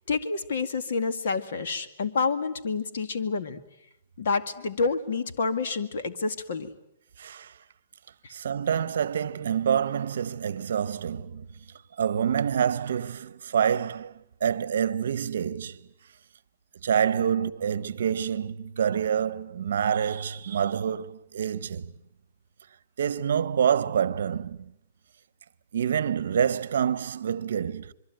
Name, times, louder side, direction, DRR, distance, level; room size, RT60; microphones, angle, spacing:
voice 1, 0.1-3.6 4.2-6.7, left 4 dB, 55° left, 2.0 m, -28 dB
voice 2, 7.2-7.5 8.3-11.5 12.0-15.8 16.8-21.9 23.0-24.7 25.7-27.9, right 8 dB, 65° right, 1.0 m, -27 dB
26.0 x 23.0 x 9.2 m
hypercardioid pair, 175°, 0 cm